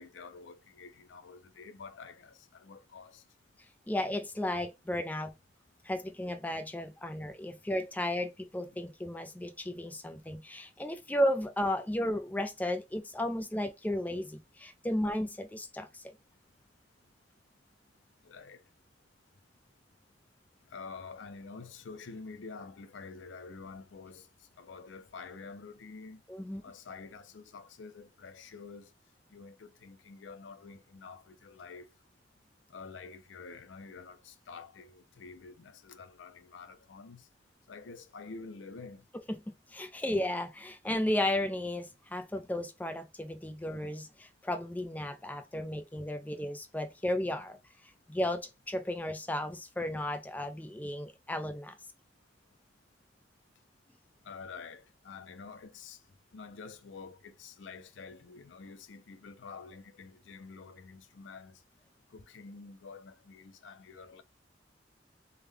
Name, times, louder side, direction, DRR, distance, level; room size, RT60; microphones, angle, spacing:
voice 1, 0.0-3.2 18.2-18.6 20.7-24.3 24.6-26.2 26.6-28.9 29.3-31.9 32.7-37.3 37.7-39.1 54.2-56.0 56.3-61.6 62.1-64.2, left 4 dB, 90° left, 0.5 m, -48 dB
voice 2, 3.9-5.3 5.8-16.0 26.3-26.6 39.5-47.6 48.1-51.7, left 1 dB, 10° left, 0.4 m, -34 dB
3.5 x 2.2 x 3.2 m
head